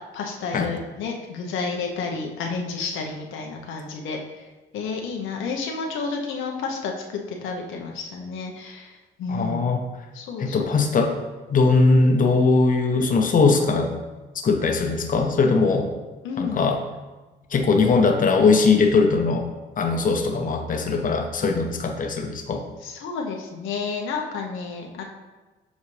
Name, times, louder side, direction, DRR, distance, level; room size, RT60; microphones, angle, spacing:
voice 1, 0.1-4.2 4.7-8.9 9.2-9.6 10.1-10.7 16.2-16.6 22.8-25.0, left 4 dB, 85° left, 1 dB, 0.9 m, -30 dB
voice 2, 9.3-9.8 10.4-11.1 11.5-13.9 14.4-15.9 16.4-16.8 17.5-19.5 19.8-22.6, left 4 dB, 45° left, 3 dB, 0.8 m, -20 dB
7.2 x 4.1 x 3.2 m, 1.2 s
cardioid pair, 90°, 20 cm